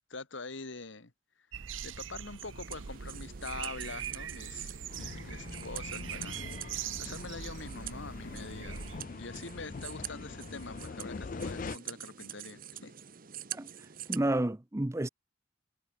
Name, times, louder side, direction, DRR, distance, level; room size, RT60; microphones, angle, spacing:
voice 1, 0.1-1.1 1.8-6.5 6.7-8.8 9.2-12.9, left 3 dB, 75° left, 1.9 m, -44 dB
sound 1, 1.5-9.0, right 8 dB, 85° right, 0.7 m, -42 dB
sound 2, 1.9-14.2, right 10 dB, 45° right, 1.0 m, -46 dB
sound 3, 4.9-11.8, left 4 dB, 45° left, 0.5 m, -43 dB
voice 2, 14.1-15.1, right 1 dB, 15° right, 0.6 m, -30 dB
head